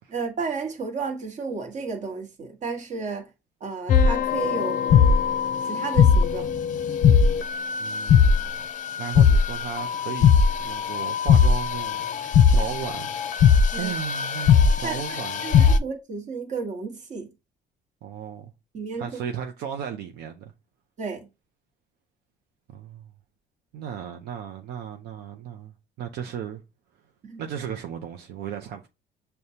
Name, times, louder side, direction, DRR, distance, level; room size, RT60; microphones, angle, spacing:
voice 1, 0.1-3.3 3.6-4.8 5.7-6.5 13.7-13.9 14.8-17.3 18.7-19.1 21.0-21.3 27.2-27.4, right 4 dB, 45° right, 1.2 m, -32 dB
sound 1, 3.9-15.8, left 6 dB, 50° left, 0.5 m, -20 dB
voice 2, 7.8-8.6 9.0-13.1 13.4-15.4 18.0-18.5 19.0-20.5 22.7-23.0 23.7-26.6 27.4-28.9, right 8 dB, 75° right, 0.6 m, -35 dB
6.5 x 2.2 x 2.8 m
cardioid pair, 110°, 17 cm